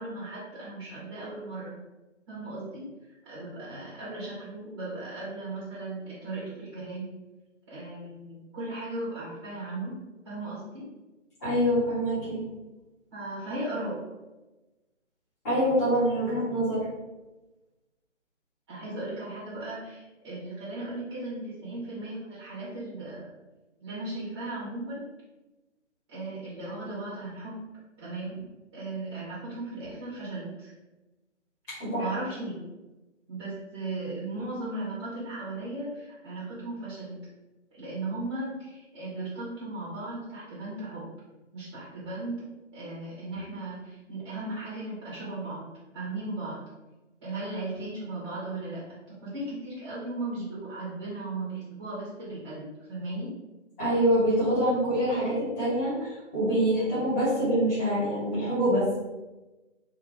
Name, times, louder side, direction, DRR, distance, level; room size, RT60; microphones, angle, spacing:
voice 1, 0.0-1.8 2.3-2.9 3.2-7.1 7.7-9.9 10.2-10.8 13.1-14.0 18.7-23.3 23.8-25.0 26.1-27.6 28.0-28.4 28.7-30.7 32.0-32.6 33.3-37.2 37.7-41.1 41.5-42.4 42.7-45.7 45.9-46.6 47.2-53.3, right 2 dB, 20° right, -9 dB, 1.1 m, -36 dB
voice 2, 11.4-12.4 15.4-16.8 31.7-32.1 53.8-58.9, equal, 15° left, -11 dB, 1.2 m, -25 dB
3.6 x 2.6 x 3.9 m, 1.1 s
figure-of-eight pair, 155°, 36 cm